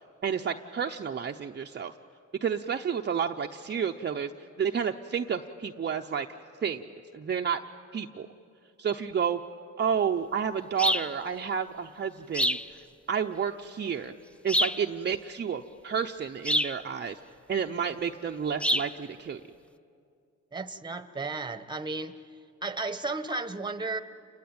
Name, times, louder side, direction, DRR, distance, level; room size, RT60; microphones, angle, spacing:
voice 1, 0.2-1.9 2.4-4.3 4.6-6.3 6.6-6.9 7.1-7.6 7.9-8.3 8.8-9.4 9.8-12.8 13.1-14.1 14.4-17.2 17.5-19.4, right 7 dB, 35° right, 3 dB, 0.8 m, -30 dB
sound 1, 10.8-11.1 12.3-12.7 14.5-14.8 16.5-16.8 18.6-18.9, equal, 5° left, 0.6 m, -26 dB
voice 2, 20.5-22.2 22.6-24.0, right 3 dB, 15° right, 11 dB, 1.2 m, -34 dB
29.0 x 22.0 x 8.9 m, 2.4 s
cardioid pair, 90°, 30 cm